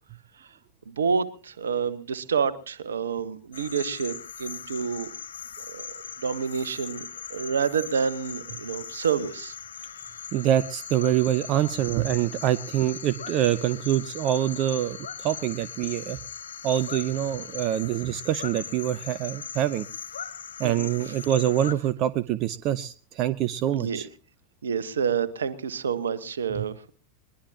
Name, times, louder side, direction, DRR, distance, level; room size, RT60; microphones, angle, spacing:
voice 1, 0.9-4.1 4.4-5.1 5.6-9.5 20.6-21.1 23.7-24.0 24.6-26.9, right 6 dB, 65° right, 15 dB, 1.2 m, -28 dB
sound 1, 3.5-21.7, left 7 dB, 70° left, 0.9 m, -39 dB
voice 2, 10.3-16.2 16.6-19.9 20.6-24.1, right 12 dB, 40° right, 17 dB, 0.7 m, -25 dB
21.5 x 21.0 x 2.9 m, 0.38 s
figure-of-eight pair, 90°, 0 cm